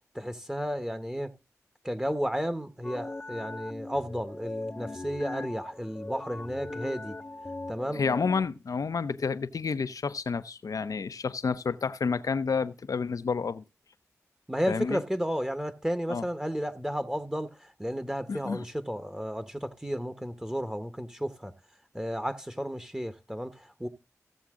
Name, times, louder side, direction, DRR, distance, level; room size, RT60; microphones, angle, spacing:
voice 1, 0.1-1.3 1.8-7.2 7.7-8.0 14.5-17.5 17.8-21.5 21.9-23.9, equal, 10° right, 1.2 m, -33 dB
sound 1, 2.8-8.4, left 2 dB, 25° left, 0.7 m, -39 dB
voice 2, 7.9-13.6 14.7-15.0 16.1-16.3 18.3-18.7, left 5 dB, 80° left, 0.7 m, -30 dB
15.5 x 7.3 x 3.7 m
cardioid pair, 45°, 6 cm